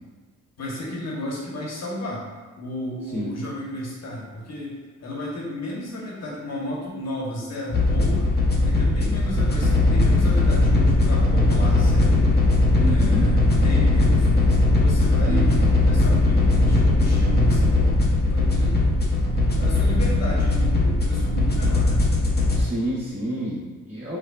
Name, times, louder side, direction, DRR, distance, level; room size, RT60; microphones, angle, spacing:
voice 1, 0.6-2.2 2.6-8.3 8.6-12.3 12.8-15.6 15.8-18.8 19.5-22.0, left 1 dB, 55° left, -4 dB, 1.1 m, -32 dB
sound 1, 7.7-22.6, left 2 dB, 30° left, 0.7 m, -19 dB
voice 2, 12.7-13.3 15.3-15.4 22.5-24.2, right 1 dB, 50° right, -12 dB, 1.5 m, -29 dB
4.8 x 2.2 x 2.4 m, 1.5 s
cardioid pair, 70°, 31 cm